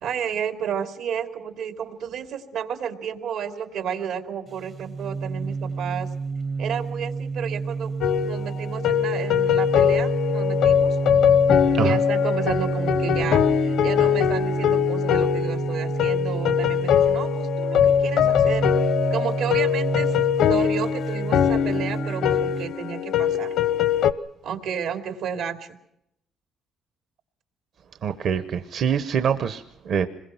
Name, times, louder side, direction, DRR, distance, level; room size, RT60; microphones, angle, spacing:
voice 1, 0.0-6.1 6.6-7.9 8.2-11.0 11.8-18.7 19.1-23.5 24.4-25.8, right 8 dB, 85° right, 7 dB, 2.7 m, -32 dB
sound 1, 4.5-22.7, right 4 dB, 35° right, 0.8 m, -29 dB
sound 2, 8.0-24.1, left 9 dB, 75° left, 0.9 m, -22 dB
voice 2, 28.0-30.1, right 7 dB, 60° right, 9 dB, 1.0 m, -24 dB
26.5 x 22.0 x 5.8 m, 0.78 s
cardioid pair, 135°, 0 cm